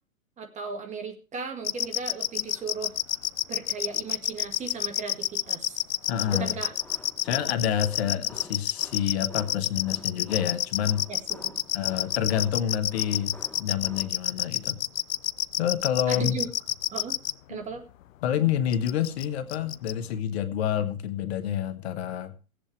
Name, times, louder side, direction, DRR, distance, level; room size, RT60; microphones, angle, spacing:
voice 1, 0.4-3.0 3.5-5.8 6.3-6.7 11.1-11.5 16.1-16.5 16.9-17.2 17.5-17.9, right 5 dB, 15° right, 7 dB, 1.8 m, -36 dB
sound 1, 1.6-17.3 18.7-19.2 19.5-19.9, left 13 dB, 70° left, 0.6 m, -28 dB
voice 2, 6.1-6.6 7.2-11.0 11.7-14.8 15.6-16.4 17.5-17.6 18.2-22.3, left 10 dB, 50° left, 11 dB, 1.3 m, -28 dB
sound 2, 6.3-14.1, left 3 dB, 5° left, 0.6 m, -49 dB
18.0 x 8.3 x 4.5 m, 0.34 s
hypercardioid pair, 130°, 41 cm